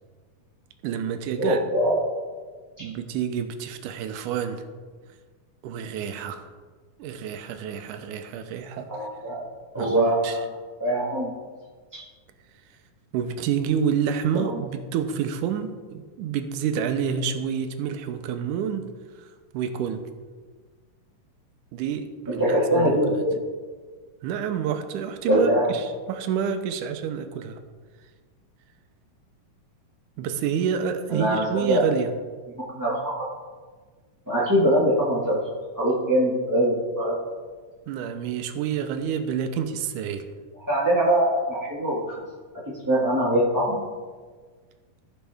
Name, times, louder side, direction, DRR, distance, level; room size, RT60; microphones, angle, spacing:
voice 1, 0.8-1.6 2.8-4.6 5.6-6.5 7.0-8.9 9.8-10.4 13.1-18.9 19.2-19.3 19.5-20.1 21.7-23.0 24.2-27.6 30.2-32.1 37.9-40.3, right 7 dB, 80° right, 8 dB, 2.1 m, -28 dB
voice 2, 1.4-2.0 2.8-2.9 8.9-9.5 9.7-10.4 10.8-11.3 11.9-12.0 14.3-14.5 22.3-23.4 25.3-25.8 30.2-30.3 31.1-31.9 32.6-33.3 34.3-35.4 35.7-37.2 40.7-42.0 42.8-43.9, equal, 10° right, -8 dB, 0.9 m, -23 dB
14.5 x 6.3 x 3.5 m, 1.5 s
omnidirectional pair, 3.8 m